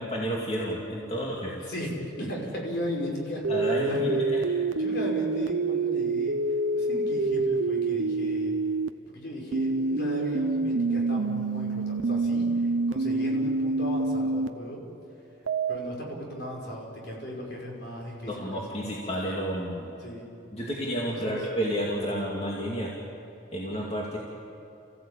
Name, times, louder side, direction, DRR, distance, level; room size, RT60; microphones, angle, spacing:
voice 1, 0.0-1.6 3.5-4.4 18.3-19.9 20.5-22.9 23.5-24.2, equal, 30° left, -4 dB, 2.4 m, -31 dB
voice 2, 1.6-6.4 6.7-8.5 9.1-14.8 15.7-18.5 20.0-20.2 21.2-21.4, equal, 55° left, -1 dB, 5.4 m, -36 dB
sound 1, 3.4-8.9 9.5-14.5 15.5-15.8, right 3 dB, 75° right, 0.7 m, -27 dB
29.5 x 15.5 x 8.8 m, 2.8 s
head